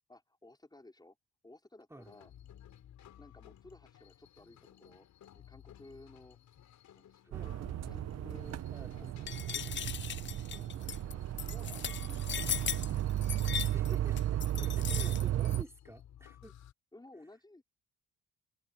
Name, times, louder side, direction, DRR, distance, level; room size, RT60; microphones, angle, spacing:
voice 1, 0.1-1.2 1.4-2.3 3.2-5.1 5.3-6.4 6.9-7.4 7.8-8.7 9.0-10.2 11.4-12.9 13.2-13.8 14.6-15.3 16.9-17.6, left 2 dB, 15° left, 5.0 m, -57 dB
sound 1, 2.0-16.7, left 10 dB, 70° left, 6.8 m, -58 dB
voice 2, 7.2-8.0 8.3-9.3 10.5-11.0 13.6-16.6, right 1 dB, 10° right, 4.1 m, -52 dB
sound 2, 7.3-15.6, right 12 dB, 55° right, 0.8 m, -34 dB
sound 3, 9.3-15.6, left 9 dB, 40° left, 0.5 m, -38 dB
cardioid pair, 90°, 30 cm